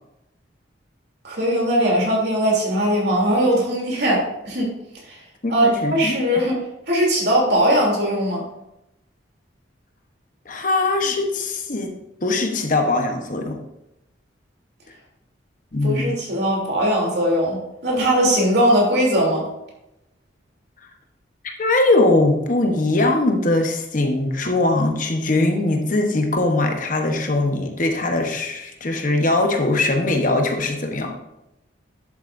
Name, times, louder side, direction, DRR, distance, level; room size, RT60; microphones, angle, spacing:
voice 1, 1.2-4.7 5.1-5.2 5.5-6.6 6.9-8.4 15.8-19.4, equal, 55° right, -3 dB, 3.1 m, -20 dB
voice 2, 5.4-6.2 10.5-11.9 12.2-13.6 15.7-16.1 21.4-31.1, left 2 dB, 45° left, 3 dB, 1.0 m, -21 dB
11.0 x 8.1 x 2.6 m, 0.88 s
head